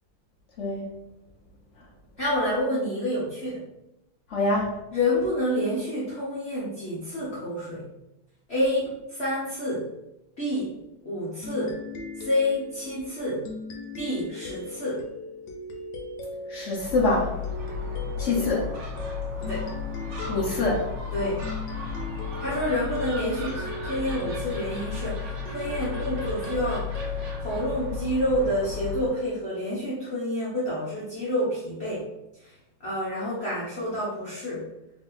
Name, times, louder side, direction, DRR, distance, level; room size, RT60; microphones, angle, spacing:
voice 1, 0.6-0.9 4.3-4.7 16.5-17.3 18.2-18.7 20.3-20.9, left 2 dB, 85° left, -4 dB, 0.6 m, -25 dB
voice 2, 2.2-3.6 4.9-7.9 8.5-9.9 10.4-10.8 11.0-11.8 12.2-13.5 13.9-15.1 18.2-18.5 19.4-19.7 21.1-21.4 22.4-26.9 27.4-32.1 32.4-32.5 32.8-34.7, left 1 dB, 50° left, -7 dB, 0.8 m, -28 dB
sound 1, 11.4-28.6, left 2 dB, 70° left, 1.2 m, -39 dB
Gull seagull, 16.7-29.2, left 5 dB, 65° right, 0.7 m, -34 dB
3.3 x 2.8 x 3.8 m, 0.89 s
omnidirectional pair, 2.2 m